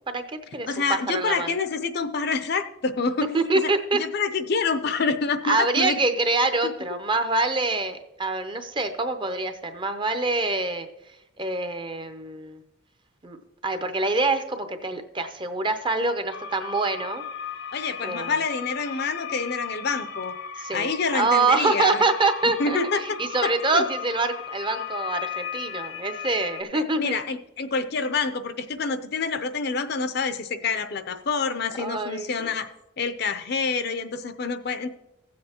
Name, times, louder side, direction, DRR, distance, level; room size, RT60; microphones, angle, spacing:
voice 1, 0.1-0.7 1.1-1.5 3.3-4.0 5.4-10.9 11.4-12.6 13.2-13.4 13.6-17.2 18.0-18.3 20.6-27.2 31.8-32.5, right 3 dB, 25° right, 8 dB, 0.6 m, -25 dB
voice 2, 0.7-3.4 3.9-6.0 6.6-6.7 17.7-22.0 22.6-23.0 23.7-23.8 26.7-32.7 33.0-34.9, left 4 dB, 55° left, 10 dB, 0.5 m, -27 dB
sound 1, 16.3-26.6, left 7 dB, 80° left, 1.0 m, -36 dB
15.5 x 7.7 x 2.9 m, 0.87 s
head